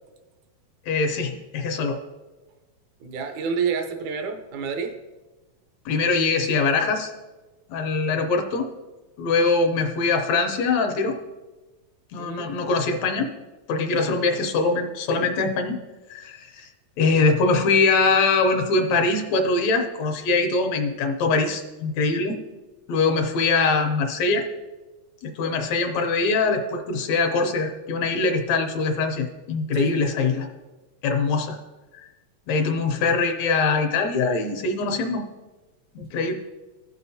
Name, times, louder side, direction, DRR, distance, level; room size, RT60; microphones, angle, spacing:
voice 1, 0.9-2.0 5.9-7.1 7.7-8.7 9.2-11.2 12.1-13.3 13.7-15.8 16.1-16.7 17.0-22.4 22.9-24.4 25.2-30.5 31.0-31.6 32.5-35.2 36.0-36.3, left 4 dB, 75° left, 5 dB, 1.9 m, -23 dB
voice 2, 3.0-5.0 12.2-12.5 29.7-30.3, right 6 dB, 80° right, 5 dB, 2.2 m, -29 dB
14.5 x 6.2 x 2.7 m, 1.2 s
omnidirectional pair, 3.3 m